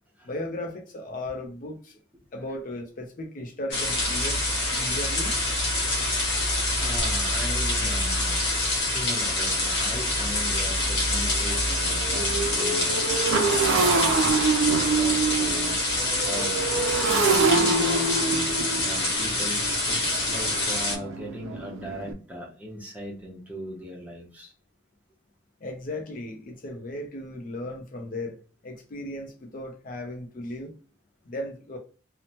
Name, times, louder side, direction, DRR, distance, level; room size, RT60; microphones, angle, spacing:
voice 1, 0.2-2.0 2.3-5.3 25.6-28.4 28.6-30.7 31.3-31.8, left 1 dB, 45° left, 0.4 m, -36 dB
sound 1, 3.7-21.0, left 2 dB, 60° left, 1.0 m, -26 dB
voice 2, 6.4-13.0 13.6-14.7 14.9-15.8 16.2-18.2 18.9-24.5, equal, 10° right, 0.7 m, -38 dB
Motorcycle, 9.5-9.6 10.1-10.2 10.5-22.1, right 4 dB, 75° right, 0.4 m, -26 dB
2.8 x 2.0 x 2.8 m
head